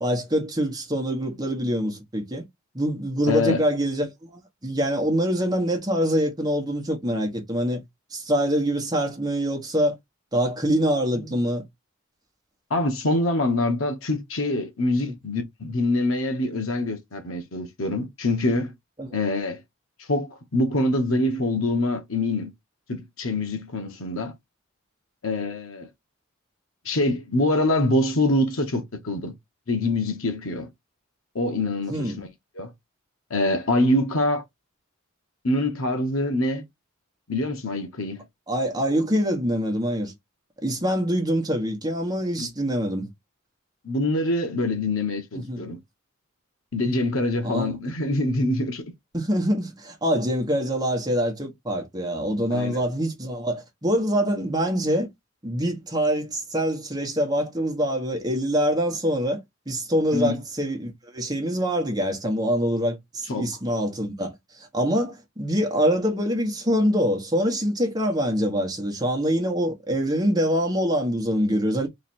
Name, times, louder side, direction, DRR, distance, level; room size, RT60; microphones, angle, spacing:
voice 1, 0.0-2.4 2.7-7.8 8.1-10.0 10.3-11.6 15.0-15.1 19.0-19.1 31.9-32.2 38.5-40.1 40.6-43.1 45.3-45.7 47.4-47.7 49.1-55.1 55.4-59.4 59.7-71.9, equal, 20° right, 1.1 m, -25 dB
voice 2, 3.3-3.6 11.1-11.4 12.7-18.7 19.1-19.6 20.1-22.5 22.9-24.3 25.2-25.9 26.8-29.3 29.7-30.7 31.3-32.3 32.6-32.7 33.3-34.4 35.4-36.6 37.3-38.2 42.4-42.5 43.8-45.8 46.7-48.8 52.5-52.8 60.1-60.4 63.3-63.5, left 2 dB, 75° left, 1.0 m, -25 dB
3.2 x 2.8 x 4.2 m
head